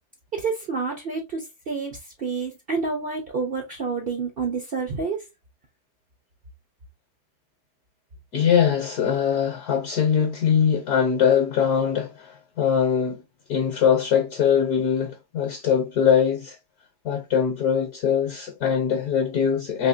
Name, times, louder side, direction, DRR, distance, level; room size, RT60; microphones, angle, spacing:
voice 1, 0.3-5.2, right 4 dB, 75° right, 0.5 m, -29 dB
voice 2, 8.3-13.2 13.5-16.6 17.0-19.9, left 7 dB, 60° left, 1.1 m, -22 dB
4.1 x 2.8 x 2.5 m
omnidirectional pair, 2.1 m